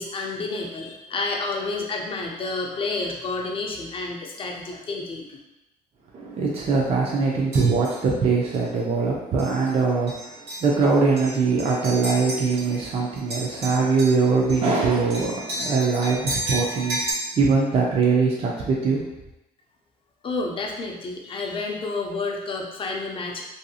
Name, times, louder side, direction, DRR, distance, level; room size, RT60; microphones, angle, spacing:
voice 1, 0.0-5.4 20.2-23.4, left 3 dB, 30° left, 0 dB, 0.5 m, -30 dB
voice 2, 6.1-19.0, right 4 dB, 35° right, -3 dB, 0.4 m, -22 dB
sound 1, 7.5-8.0 8.5-8.7 9.4-9.7 10.1-12.9 13.2-17.1, right 1 dB, 65° right, 1.1 m, -33 dB
2.6 x 2.3 x 2.7 m, 0.96 s
cardioid pair, 110°, 17 cm